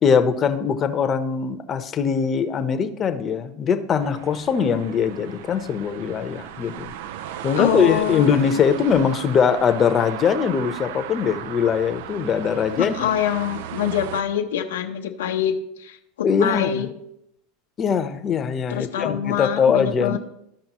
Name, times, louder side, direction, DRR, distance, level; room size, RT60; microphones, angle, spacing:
voice 1, 0.0-6.9 7.4-13.1 16.2-16.8 17.8-20.2, left 6 dB, 30° left, 8 dB, 0.8 m, -21 dB
sound 1, 4.0-14.2, right 10 dB, 70° right, 0.4 m, -36 dB
voice 2, 7.6-8.6 12.8-15.5 15.8-16.9 18.7-20.2, left 9 dB, 90° left, 4 dB, 0.8 m, -25 dB
14.0 x 5.1 x 3.0 m, 0.80 s
supercardioid pair, 110°, 0 cm